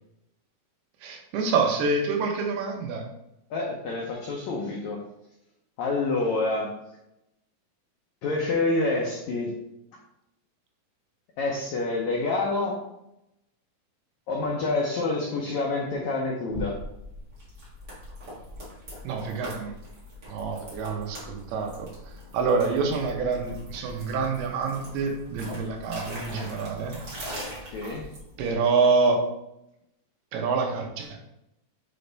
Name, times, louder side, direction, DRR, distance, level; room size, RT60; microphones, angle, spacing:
voice 1, 1.0-3.1 19.0-19.7 20.3-27.0 28.4-29.2 30.3-31.2, right 4 dB, 90° right, 3 dB, 2.9 m, -27 dB
voice 2, 3.5-5.0 5.8-6.7 8.2-9.5 11.4-12.8 14.3-16.7 27.7-28.1, left 3 dB, 85° left, -1 dB, 1.6 m, -27 dB
sound 1, 16.5-28.5, left 1 dB, 40° right, 1.6 m, -41 dB
7.4 x 3.4 x 4.0 m, 0.85 s
omnidirectional pair, 4.4 m